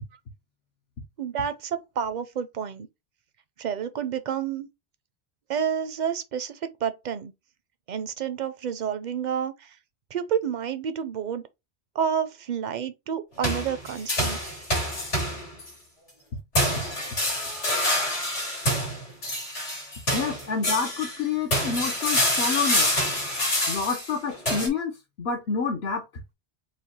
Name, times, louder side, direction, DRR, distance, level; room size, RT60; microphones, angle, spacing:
voice 1, 1.2-2.9 3.6-4.7 5.5-7.3 7.9-9.5 10.1-11.4 12.0-14.4, right 8 dB, 55° right, 0.5 m, -29 dB
sound 1, 13.4-15.7 16.5-21.2 21.5-24.7, left 1 dB, 90° left, 2.6 m, -26 dB
voice 2, 20.1-22.9 23.7-26.0, left 5 dB, 70° left, 1.0 m, -28 dB
4.9 x 2.2 x 4.1 m
omnidirectional pair, 1.1 m